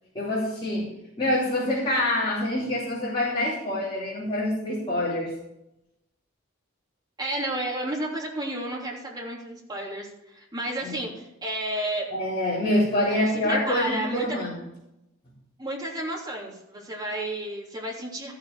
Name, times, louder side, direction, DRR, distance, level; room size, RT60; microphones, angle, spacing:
voice 1, 0.1-0.9 1.2-5.3 10.8-10.9 12.1-14.6, left 1 dB, 25° left, -12 dB, 4.2 m, -26 dB
voice 2, 7.2-12.1 13.4-14.4 15.6-18.3, right 1 dB, 20° right, -4 dB, 3.1 m, -32 dB
14.5 x 6.7 x 4.9 m, 0.88 s
head